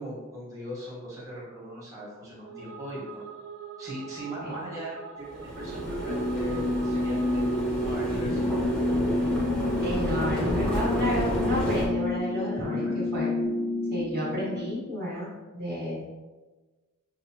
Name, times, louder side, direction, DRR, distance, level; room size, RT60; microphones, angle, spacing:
voice 1, 0.0-3.3 3.8-8.8 9.6-10.9 12.6-13.0, equal, 15° right, -8 dB, 1.2 m, -40 dB
sound 1, 2.3-8.0, right 6 dB, 60° right, 0.4 m, -44 dB
sound 2, 5.3-11.9, equal, 5° left, 0.7 m, -31 dB
sound 3, 6.1-14.8, left 2 dB, 25° left, 0.3 m, -29 dB
voice 2, 9.8-13.3 13.9-16.0, equal, 45° right, -6 dB, 1.1 m, -32 dB
5.9 x 2.4 x 2.7 m, 1.3 s
head